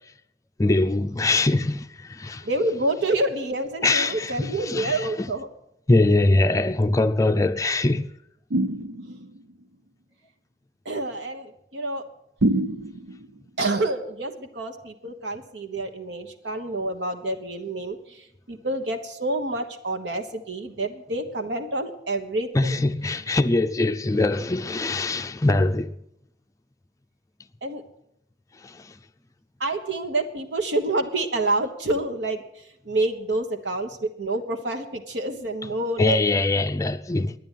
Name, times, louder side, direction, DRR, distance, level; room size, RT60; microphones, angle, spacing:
voice 1, 0.6-2.4 3.8-5.3 5.9-8.1 22.5-25.9 28.6-28.8 36.0-37.4, left 2 dB, 20° left, 0.5 m, -22 dB
voice 2, 2.4-5.5 10.8-12.0 13.6-18.0 18.5-22.8 27.6-27.8 29.6-32.4 32.8-36.2, right 2 dB, 70° right, 1.3 m, -28 dB
sound 1, 8.5-9.4 12.4-13.3, right 1 dB, 90° right, 0.7 m, -25 dB
11.0 x 9.7 x 9.1 m
head